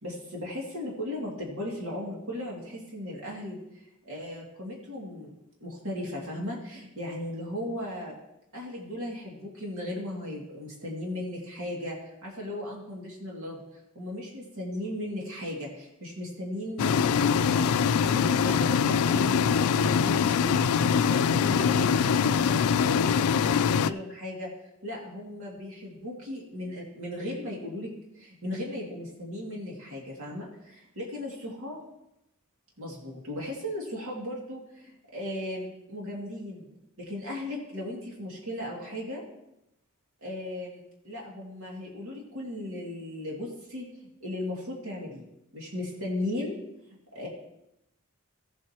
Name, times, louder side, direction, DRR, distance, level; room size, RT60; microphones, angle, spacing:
voice 1, 0.0-5.3 5.6-8.1 8.5-17.8 18.1-19.4 19.8-24.5 24.8-31.8 32.8-36.7 37.1-39.2 40.2-40.8 41.0-45.3 45.5-46.6 47.1-47.3, left 1 dB, 70° right, -3 dB, 2.5 m, -37 dB
sound 1, 16.8-23.9, left 6 dB, 85° left, 0.4 m, -23 dB
17.0 x 7.6 x 3.0 m, 0.84 s
head